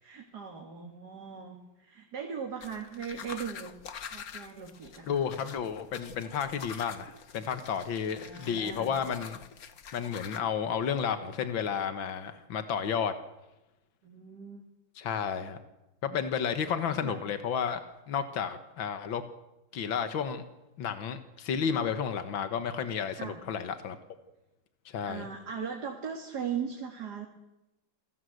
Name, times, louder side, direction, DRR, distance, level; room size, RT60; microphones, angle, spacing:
voice 1, 0.0-3.7 4.1-5.2 8.0-8.9 14.0-14.6 17.0-17.2 23.2-23.4 25.0-27.3, right 7 dB, 55° right, 2 dB, 2.8 m, -39 dB
sound 1, 2.6-10.4, left 7 dB, 55° left, 1.5 m, -46 dB
voice 2, 5.1-9.4 9.9-13.1 15.0-15.6 16.0-19.2 19.7-20.4 20.8-24.0 24.9-25.3, left 7 dB, 80° left, 9 dB, 2.1 m, -32 dB
27.5 x 18.0 x 8.0 m, 0.97 s
omnidirectional pair, 2.1 m